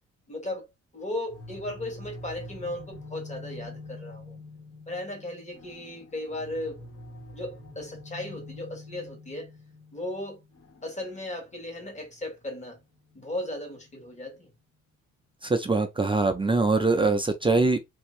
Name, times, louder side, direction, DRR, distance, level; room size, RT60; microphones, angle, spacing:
voice 1, 0.3-0.7 0.9-4.4 4.9-6.9 7.3-9.5 9.9-10.4 10.8-12.8 13.1-14.5, left 1 dB, 25° left, 1.2 m, -36 dB
sound 1, 1.3-14.1, left 2 dB, 50° left, 1.4 m, -46 dB
voice 2, 15.4-17.8, right 3 dB, 15° right, 0.4 m, -23 dB
3.3 x 2.6 x 3.0 m
cardioid pair, 140°, 30 cm